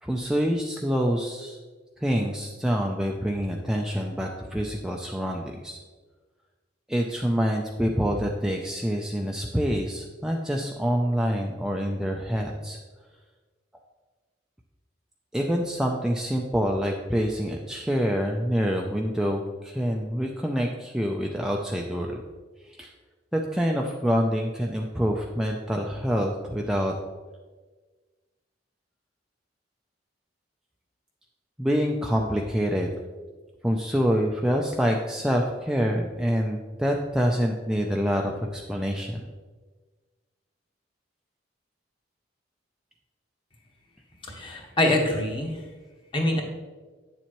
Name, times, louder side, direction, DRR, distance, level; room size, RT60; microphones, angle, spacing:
voice 1, 0.0-1.6 2.0-5.8 6.9-12.8 15.3-22.2 22.6-22.9 23.3-26.9 31.6-32.9 33.6-39.3, equal, 5° right, 0 dB, 0.4 m, -26 dB
voice 2, 44.2-45.6 46.1-46.4, left 1 dB, 25° left, 1 dB, 1.3 m, -25 dB
8.9 x 7.1 x 3.0 m, 1.4 s
head